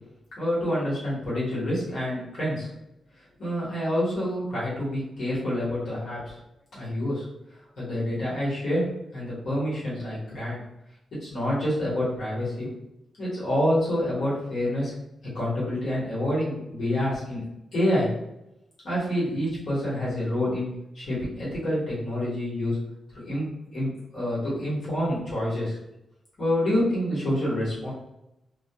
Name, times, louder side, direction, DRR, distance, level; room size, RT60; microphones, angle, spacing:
voice 1, 0.4-2.7 3.4-6.4 6.7-7.2 7.8-10.6 11.1-12.7 13.2-14.9 15.3-17.4 17.7-18.1 18.8-20.7 20.9-22.8 23.1-25.8 26.4-27.9, left 1 dB, 55° left, -8 dB, 1.0 m, -27 dB
2.2 x 2.1 x 2.8 m, 0.86 s
wide cardioid pair, 170°, 0 cm